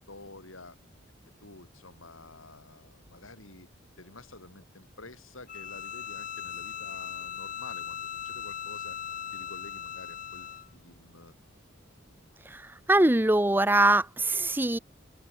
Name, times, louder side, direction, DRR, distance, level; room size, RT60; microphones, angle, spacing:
voice 1, 0.1-0.8 1.4-3.7 4.0-9.0 9.3-11.3, left 2 dB, 90° left, 6.8 m, -49 dB
Bowed string instrument, 5.5-10.7, left 8 dB, 40° left, 0.7 m, -39 dB
voice 2, 12.9-14.8, right 2 dB, 10° right, 0.8 m, -22 dB
open air
head